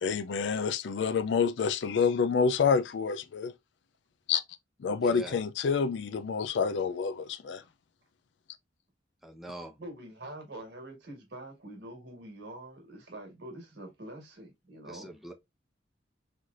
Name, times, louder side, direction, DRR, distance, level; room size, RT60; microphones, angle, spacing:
voice 1, 0.0-3.5 4.3-4.4 4.8-7.6, left 5 dB, 70° left, 0.4 m, -28 dB
voice 2, 5.0-5.4 9.2-9.8 14.8-15.3, right 1 dB, ahead, 0.7 m, -43 dB
voice 3, 9.8-15.1, right 1 dB, 60° right, 1.5 m, -45 dB
4.1 x 3.2 x 2.4 m
head